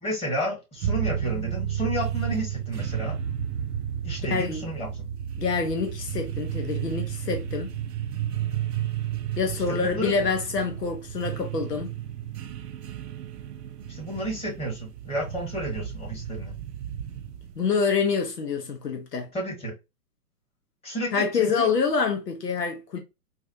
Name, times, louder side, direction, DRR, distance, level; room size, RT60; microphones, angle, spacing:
voice 1, 0.0-3.2 4.0-4.9 9.7-10.2 13.9-16.5 19.3-19.7 20.8-21.7, right 1 dB, 10° left, 1.3 m, -31 dB
sound 1, 0.8-17.6, right 9 dB, 80° right, 0.6 m, -32 dB
voice 2, 4.3-4.7 5.4-7.8 9.4-12.0 17.6-19.3 21.1-23.0, left 5 dB, 90° left, 0.8 m, -26 dB
4.0 x 2.4 x 2.6 m
hypercardioid pair, 125°, 47 cm